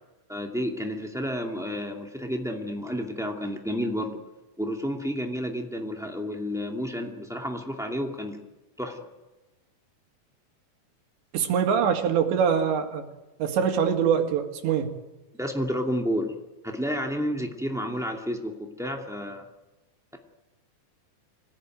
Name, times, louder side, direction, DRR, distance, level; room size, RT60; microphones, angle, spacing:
voice 1, 0.3-4.2 4.6-8.4 8.8-9.0 15.4-16.3 16.6-19.5, equal, ahead, 1 dB, 0.8 m, -30 dB
voice 2, 11.3-13.1 13.4-15.0, right 7 dB, 90° right, 4 dB, 4.3 m, -24 dB
25.5 x 18.5 x 9.3 m, 1.1 s
omnidirectional pair, 5.0 m